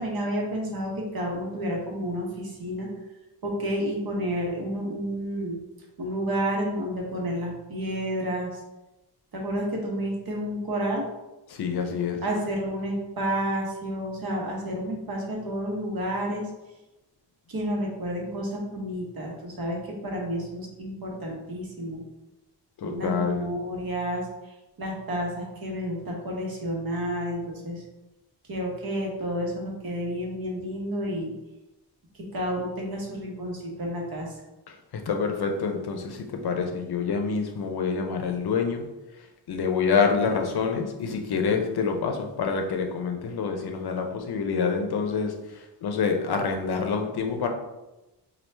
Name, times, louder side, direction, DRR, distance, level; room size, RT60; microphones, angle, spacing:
voice 1, 0.0-2.9 3.4-5.6 6.0-8.6 9.3-11.0 12.2-16.4 17.5-19.8 20.0-22.0 22.8-24.5 24.8-27.8 28.5-31.3 32.3-34.3, equal, 60° right, -1 dB, 1.1 m, -30 dB
voice 2, 11.5-12.2 22.8-23.4 34.9-38.8 39.5-47.5, left 5 dB, 65° left, 4 dB, 0.6 m, -27 dB
4.5 x 2.4 x 3.2 m, 1.0 s
wide cardioid pair, 165°, 41 cm